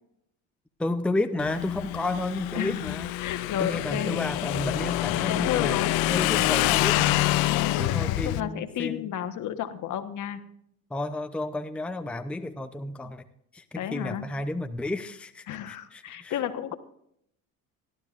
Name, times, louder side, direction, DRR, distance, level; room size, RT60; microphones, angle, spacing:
voice 1, 0.8-3.2 3.6-5.8 6.1-7.2 7.8-9.1 10.9-13.3 13.5-16.4, left 2 dB, 5° left, 8 dB, 0.6 m, -32 dB
Motorcycle / Engine, 1.4-8.4, left 16 dB, 80° left, 0.6 m, -26 dB
voice 2, 2.5-4.2 5.1-5.9 7.5-10.4 13.8-14.2 15.5-16.7, left 10 dB, 55° left, 8 dB, 1.3 m, -32 dB
17.5 x 12.5 x 2.5 m, 0.71 s
supercardioid pair, 95°, 36 cm